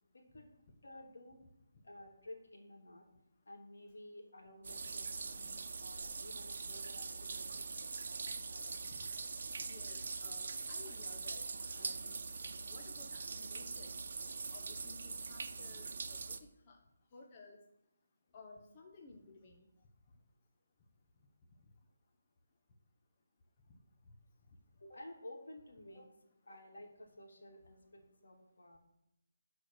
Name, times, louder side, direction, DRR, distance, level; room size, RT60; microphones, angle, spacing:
voice 1, 0.1-0.5 0.8-1.4 1.8-3.0 3.4-8.8 24.8-26.2 26.5-28.8, left 1 dB, 80° left, 1 dB, 2.9 m, -54 dB
sound 1, 4.6-16.4, right 4 dB, 60° right, 0.9 m, -43 dB
voice 2, 9.7-12.2 12.7-16.4 16.7-16.8 17.1-17.6 18.3-19.7 26.5-26.6, left 3 dB, 30° left, 2 dB, 1.3 m, -56 dB
12.5 x 4.7 x 6.3 m, 0.86 s
figure-of-eight pair, 160°, 0 cm